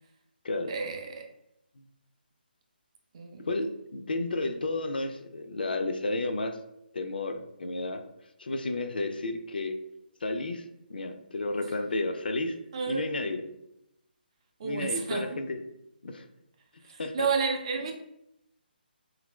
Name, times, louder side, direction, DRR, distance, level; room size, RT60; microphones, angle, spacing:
voice 1, 0.7-1.3 3.1-3.5 12.7-13.1 14.6-15.3 16.8-17.9, right 5 dB, 35° right, 2 dB, 0.4 m, -31 dB
voice 2, 3.4-6.6 6.9-8.0 8.4-9.8 10.2-10.6 10.9-12.6 12.9-13.4 14.6-15.6 16.0-16.2 17.0-17.3, left 2 dB, 60° left, 7 dB, 0.4 m, -32 dB
2.8 x 2.5 x 3.0 m, 0.81 s
figure-of-eight pair, 145°, 6 cm